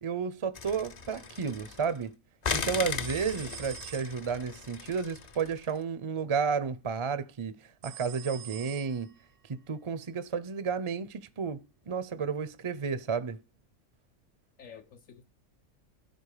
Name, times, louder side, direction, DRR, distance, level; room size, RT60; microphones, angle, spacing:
voice 1, 0.0-2.2 2.5-7.5 7.8-9.1 9.7-13.4, right 6 dB, 35° right, 0.5 m, -32 dB
sound 1, 0.5-2.0 2.4-5.7, left 5 dB, 40° left, 0.6 m, -37 dB
sound 2, 3.0-4.5 7.8-9.3, right 14 dB, 70° right, 1.0 m, -46 dB
voice 2, 3.3-3.7 14.6-15.2, left 7 dB, 75° left, 1.2 m, -50 dB
13.0 x 4.4 x 4.9 m
omnidirectional pair, 1.4 m